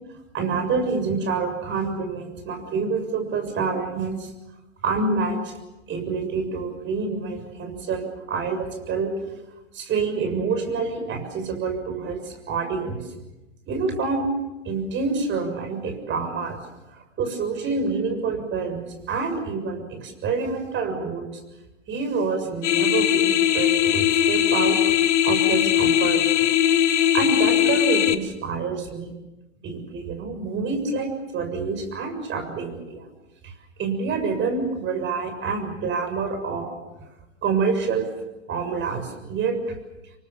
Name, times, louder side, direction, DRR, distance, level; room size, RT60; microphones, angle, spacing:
voice 1, 0.3-4.3 4.8-5.5 5.9-9.1 9.7-13.1 13.7-14.3 14.7-16.6 16.9-18.8 19.1-21.3 21.9-26.5 27.1-29.1 29.6-33.1 33.4-33.5 33.8-36.8 37.4-38.1 38.5-39.8, right 4 dB, 30° right, 6 dB, 7.0 m, -27 dB
sound 1, 22.6-28.1, left 11 dB, 70° left, 1.8 m, -20 dB
28.0 x 24.0 x 7.1 m, 1.0 s
hypercardioid pair, 110°, 37 cm